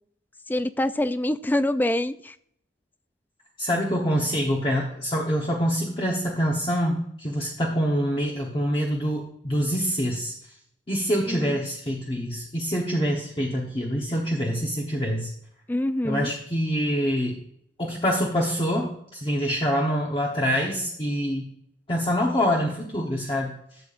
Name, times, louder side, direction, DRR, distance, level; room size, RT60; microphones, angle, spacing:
voice 1, 0.5-2.4 11.3-11.6 15.7-16.3, left 1 dB, 10° left, 13 dB, 0.3 m, -25 dB
voice 2, 3.6-10.3 10.9-15.3 16.0-17.4 17.8-21.5 21.9-23.5, equal, 30° left, -2 dB, 1.1 m, -25 dB
12.5 x 7.3 x 2.5 m, 0.68 s
head